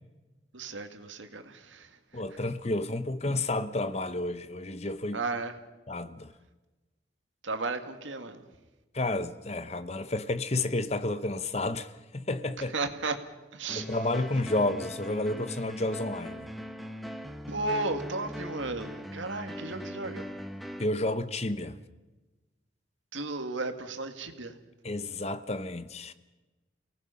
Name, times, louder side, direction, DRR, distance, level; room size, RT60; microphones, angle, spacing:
voice 1, 0.5-2.4 5.1-5.6 7.4-8.4 12.7-13.2 13.5-14.0 17.5-20.3 23.1-24.6, right 3 dB, 85° right, 2.0 m, -34 dB
voice 2, 2.1-5.2 5.9-6.3 8.9-12.7 13.8-16.5 20.8-21.8 24.8-26.1, left 2 dB, 35° left, 0.9 m, -31 dB
sound 1, 13.7-20.8, equal, ahead, 1.0 m, -40 dB
29.5 x 18.5 x 5.7 m
head